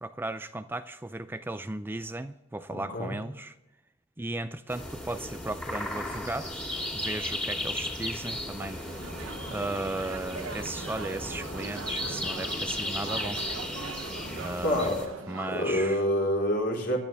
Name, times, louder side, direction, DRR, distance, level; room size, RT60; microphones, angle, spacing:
voice 1, 0.0-3.5 4.2-6.7 6.9-8.8 9.5-13.4 14.4-14.9 15.3-16.0, right 2 dB, 10° right, 0.4 m, -36 dB
voice 2, 2.7-3.2 14.6-15.0 15.5-17.0, equal, 60° left, 4.3 m, -27 dB
sound 1, 4.7-15.1, left 1 dB, 5° left, 2.7 m, -35 dB
sound 2, 8.6-15.7, right 4 dB, 85° right, 1.0 m, -41 dB
24.0 x 11.0 x 3.5 m
head